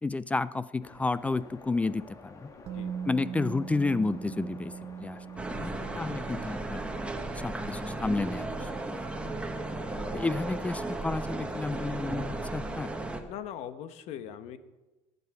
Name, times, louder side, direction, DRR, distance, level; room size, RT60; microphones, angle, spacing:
voice 1, 0.0-2.5 3.1-4.7 5.0-6.8 7.3-9.1 10.1-12.9, left 3 dB, 10° left, 17 dB, 0.3 m, -31 dB
sound 1, 0.8-13.0, left 3 dB, 25° left, 1.4 m, -50 dB
Musical instrument, 2.7-10.6 10.8-11.0, right 7 dB, 50° right, 0.8 m, -42 dB
sound 2, 5.4-13.2, right 2 dB, 10° right, 1.3 m, -35 dB
voice 2, 5.6-6.4 13.3-14.6, left 10 dB, 60° left, 11 dB, 1.1 m, -42 dB
19.0 x 8.2 x 4.7 m, 1.1 s
cardioid pair, 125°, 12 cm